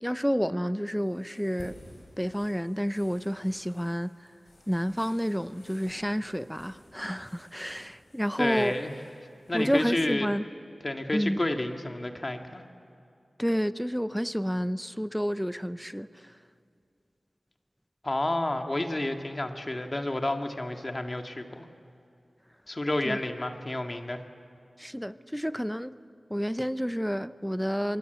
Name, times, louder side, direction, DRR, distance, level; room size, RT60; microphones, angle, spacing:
voice 1, 0.0-1.7 2.2-4.1 4.7-8.8 9.5-10.4 11.1-11.4 13.4-16.3 23.1-23.2 24.8-25.9 26.3-28.0, equal, ahead, 0.7 m, -30 dB
sound 1, 0.9-9.9, left 1 dB, 85° left, 7.8 m, -54 dB
voice 2, 8.4-9.0 9.5-10.3 10.8-12.6 18.0-21.7 22.7-24.2, left 1 dB, 35° left, 2.0 m, -30 dB
26.5 x 23.0 x 8.1 m
cardioid pair, 45°, 0 cm